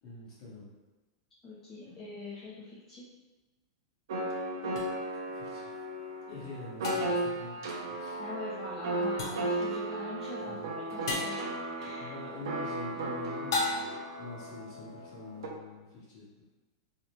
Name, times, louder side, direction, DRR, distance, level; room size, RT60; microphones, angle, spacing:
voice 1, 0.0-0.7 1.8-2.0 5.3-5.7 6.3-8.2 10.4-11.0 12.0-16.4, left 3 dB, 30° left, -7 dB, 1.0 m, -46 dB
voice 2, 1.4-3.0 8.2-12.1, left 2 dB, 15° left, -8 dB, 0.4 m, -43 dB
sound 1, 4.1-15.5, right 1 dB, 75° right, 0.5 m, -35 dB
sound 2, 4.8-4.9 6.8-7.3 9.2-9.6 11.1-11.4 13.5-14.1, left 2 dB, 80° left, 0.6 m, -33 dB
2.6 x 2.1 x 2.9 m, 1.2 s
supercardioid pair, 165°, 2 cm